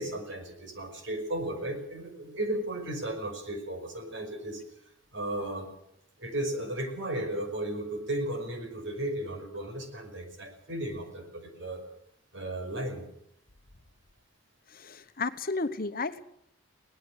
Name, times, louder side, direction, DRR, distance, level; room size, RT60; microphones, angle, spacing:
voice 1, 0.0-4.6 5.1-5.7 6.2-11.8 12.3-13.1, right 1 dB, 65° right, 6 dB, 5.5 m, -35 dB
voice 2, 14.7-16.2, left 3 dB, 45° left, 11 dB, 1.1 m, -33 dB
23.5 x 18.5 x 6.5 m, 0.75 s
head